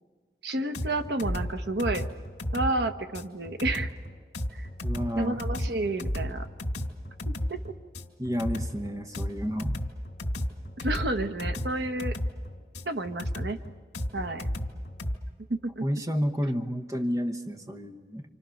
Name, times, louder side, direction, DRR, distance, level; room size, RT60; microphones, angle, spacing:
voice 1, 0.4-2.1 2.5-3.9 4.5-4.7 5.2-6.5 7.3-7.7 10.8-12.2 12.8-13.6 14.1-14.5 15.5-15.9, right 2 dB, 75° right, 7 dB, 1.3 m, -30 dB
sound 1, 0.7-15.2, equal, 75° left, 2.4 m, -33 dB
voice 2, 4.8-5.4 8.2-9.8 15.8-18.2, equal, 20° right, 5 dB, 1.1 m, -30 dB
28.0 x 26.5 x 6.5 m, 1.5 s
head